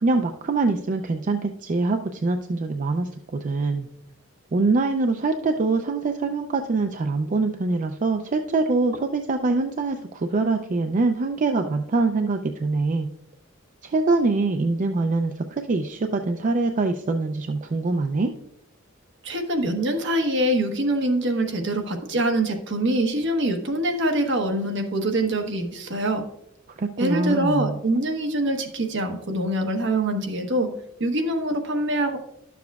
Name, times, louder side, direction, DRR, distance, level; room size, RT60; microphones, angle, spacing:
voice 1, 0.0-3.9 4.5-13.1 13.8-18.3 26.7-27.8, right 3 dB, 40° right, 6 dB, 0.4 m, -24 dB
voice 2, 19.2-26.2 27.0-30.7 31.0-32.2, right 1 dB, 65° right, 4 dB, 1.1 m, -24 dB
11.5 x 7.0 x 2.3 m, 0.78 s
head